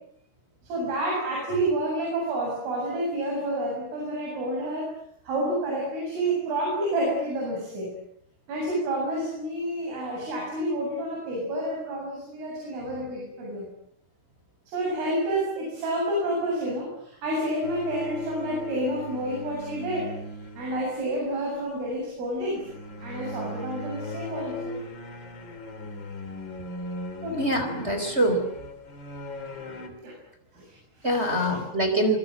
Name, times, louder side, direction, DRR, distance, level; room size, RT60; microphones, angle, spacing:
voice 1, 0.6-4.9 5.2-7.9 8.5-13.7 14.7-20.2 20.6-22.7 23.0-24.8 27.2-27.4 30.0-30.2 30.5-31.6, right 1 dB, 80° right, -2 dB, 10.0 m, -29 dB
sound 1, 17.6-21.2 22.5-29.9, left 1 dB, 30° left, 2.9 m, -38 dB
voice 2, 27.3-28.4 31.0-32.2, right 1 dB, 15° right, 5 dB, 3.9 m, -24 dB
26.0 x 24.5 x 7.8 m, 0.70 s
omnidirectional pair, 5.7 m